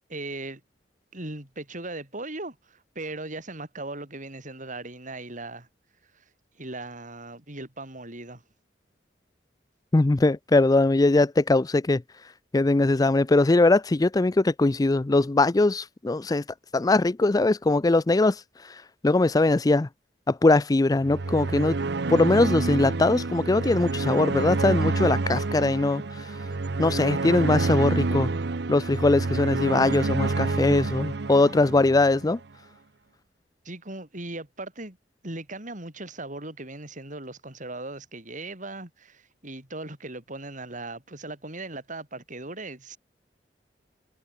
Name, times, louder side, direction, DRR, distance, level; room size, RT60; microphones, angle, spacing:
voice 1, 0.1-0.6 1.1-5.7 6.1-6.2 6.6-8.4 33.6-35.0 35.2-43.0, right 2 dB, 45° right, 6.4 m, -38 dB
voice 2, 9.9-12.0 12.5-16.4 16.7-19.9 20.3-21.7 22.1-26.3 26.8-28.3 28.7-32.4, left 2 dB, 20° left, 0.4 m, -21 dB
sound 1, 21.0-32.3, right 3 dB, 65° right, 0.8 m, -28 dB
head